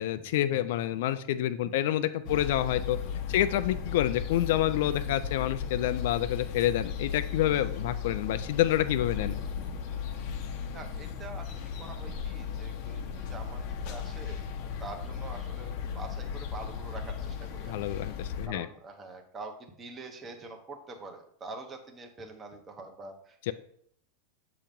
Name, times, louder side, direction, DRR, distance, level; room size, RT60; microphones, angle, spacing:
voice 1, 0.0-3.0 3.3-9.3 17.7-18.7 23.5-23.6, left 13 dB, 70° left, 11 dB, 0.4 m, -28 dB
sound 1, 2.2-18.5, left 7 dB, 55° left, 0.8 m, -36 dB
voice 2, 10.7-14.4 14.8-17.8 18.4-23.5, right 3 dB, 20° right, 4 dB, 0.9 m, -45 dB
7.2 x 2.9 x 5.2 m, 0.64 s
supercardioid pair, 130°, 0 cm